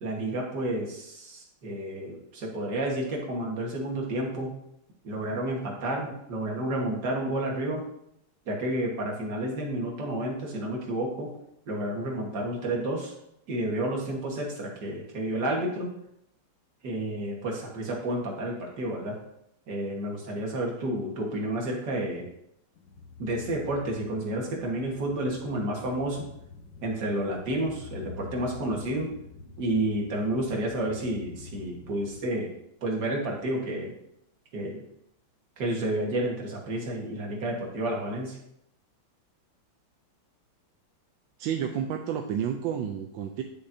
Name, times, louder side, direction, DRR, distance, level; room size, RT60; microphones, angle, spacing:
voice 1, 0.0-4.5 5.0-7.8 8.5-11.3 11.7-13.1 13.5-15.9 16.8-19.2 19.7-22.3 23.2-26.2 26.8-29.1 29.6-32.5 32.8-33.9 34.5-34.8 35.6-38.4, right 1 dB, 55° right, -1 dB, 2.0 m, -30 dB
sound 1, 22.8-32.2, left 4 dB, 60° left, 1.1 m, -46 dB
voice 2, 41.4-43.4, right 8 dB, 75° right, 4 dB, 1.2 m, -30 dB
8.9 x 6.7 x 2.7 m, 0.78 s
omnidirectional pair, 2.3 m